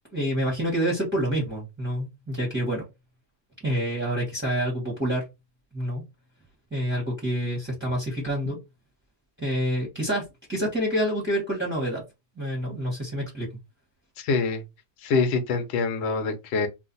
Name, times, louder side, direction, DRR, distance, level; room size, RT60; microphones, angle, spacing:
voice 1, 0.1-2.8 3.6-5.2 5.7-6.0 6.7-8.6 9.4-10.2 10.5-12.0 12.4-13.5, equal, 10° right, 0.7 m, -27 dB
voice 2, 14.2-14.6 15.0-16.7, left 4 dB, 60° left, 0.7 m, -25 dB
2.5 x 2.4 x 3.9 m
omnidirectional pair, 1.8 m